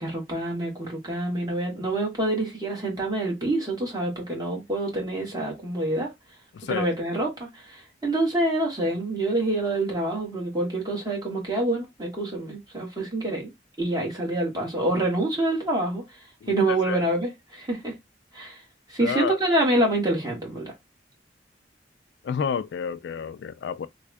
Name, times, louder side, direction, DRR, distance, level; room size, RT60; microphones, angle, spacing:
voice 1, 0.0-6.1 6.7-13.5 13.8-16.0 16.5-18.0 18.3-18.6 18.9-20.7, right 1 dB, 25° right, 1.5 m, -26 dB
voice 2, 6.5-6.9 16.4-17.0 19.0-19.4 22.2-23.9, left 6 dB, 75° left, 0.3 m, -30 dB
3.4 x 2.3 x 3.2 m
head